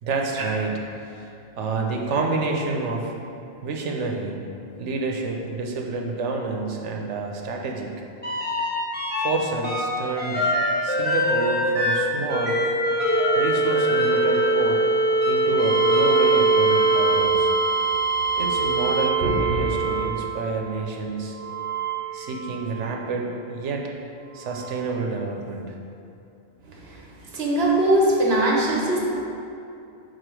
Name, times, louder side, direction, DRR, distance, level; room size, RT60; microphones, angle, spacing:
voice 1, 0.0-3.1 3.6-4.4 4.8-7.9 9.2-10.5 10.8-12.6 13.4-14.8 15.3-17.5 18.4-21.3 22.1-23.9 24.3-25.7, right 3 dB, 85° right, 1 dB, 1.1 m, -28 dB
sound 1, 8.2-9.3 9.6-20.4 21.3-22.8 24.5-24.6, right 2 dB, 10° left, 1.2 m, -22 dB
voice 2, 26.7-27.0 27.3-29.0, right 1 dB, 65° right, -3 dB, 1.2 m, -21 dB
4.9 x 4.5 x 6.1 m, 2.7 s
omnidirectional pair, 1.2 m